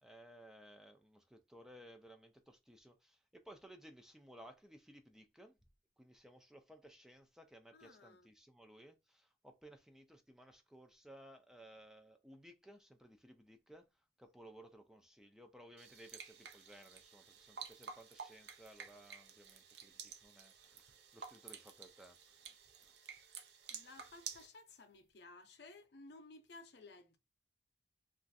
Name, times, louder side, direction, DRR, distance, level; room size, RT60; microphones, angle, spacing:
voice 1, 0.0-5.6 6.0-13.9 14.2-22.6 22.8-23.0, right 1 dB, 5° right, 0.3 m, -59 dB
voice 2, 7.7-8.3 23.7-27.2, left 3 dB, 70° left, 0.6 m, -57 dB
sound 1, 15.8-24.5, right 6 dB, 70° right, 0.5 m, -52 dB
3.0 x 2.4 x 2.5 m
head